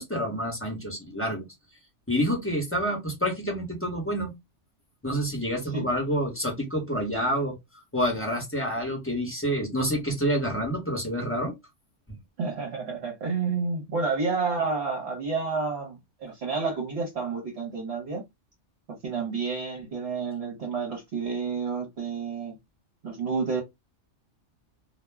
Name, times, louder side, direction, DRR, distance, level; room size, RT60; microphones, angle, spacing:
voice 1, 0.0-1.5 2.1-4.3 5.0-7.6 7.9-11.5, equal, 10° left, 0.8 m, -28 dB
voice 2, 12.4-18.2 18.9-22.6 23.0-23.6, right 4 dB, 60° right, 1.0 m, -30 dB
2.4 x 2.1 x 3.3 m
omnidirectional pair, 1.3 m